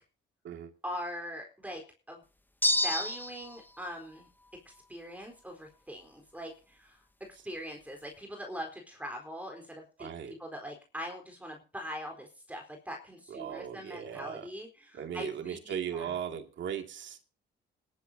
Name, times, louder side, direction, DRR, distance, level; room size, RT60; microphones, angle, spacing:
voice 1, 0.8-1.8 2.1-2.2 2.6-4.3 4.9-7.0 7.4-16.1, equal, 10° right, 4.1 m, -42 dB
sound 1, 2.6-3.6, left 1 dB, 10° left, 0.9 m, -28 dB
voice 2, 10.0-10.4 13.3-14.5 14.9-17.2, right 8 dB, 70° right, 2.4 m, -38 dB
20.5 x 12.0 x 2.8 m
cardioid pair, 90°, 20 cm